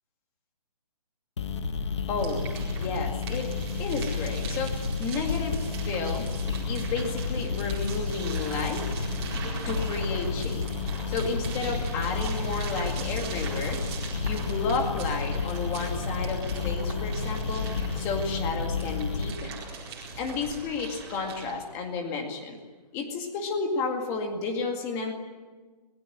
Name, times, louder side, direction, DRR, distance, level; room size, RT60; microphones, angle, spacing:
sound 1, 1.4-19.3, left 4 dB, 45° left, 1.6 m, -31 dB
voice 1, 2.1-6.3 6.7-9.1 9.6-10.7 11.1-13.8 14.2-17.7 18.0-19.5 19.9-22.6 22.9-25.1, left 4 dB, 10° left, 4 dB, 2.1 m, -32 dB
sound 2, 2.2-21.5, right 4 dB, 15° right, 4.5 m, -40 dB
26.0 x 21.0 x 9.3 m, 1.3 s
hypercardioid pair, 175°, 21 cm